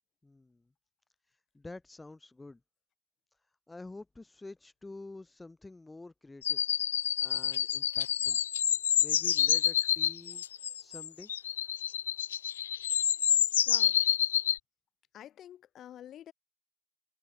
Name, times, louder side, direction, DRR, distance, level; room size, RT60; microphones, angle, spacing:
voice 1, 0.2-0.7 1.3-2.6 3.7-6.6 7.2-8.4 9.0-10.4 10.8-11.3, left 2 dB, 10° left, 6.0 m, -48 dB
sound 1, 6.4-14.6, left 10 dB, 80° left, 0.7 m, -28 dB
voice 2, 13.7-14.0 15.1-16.3, left 11 dB, 35° left, 4.2 m, -48 dB
hypercardioid pair, 95°, 0 cm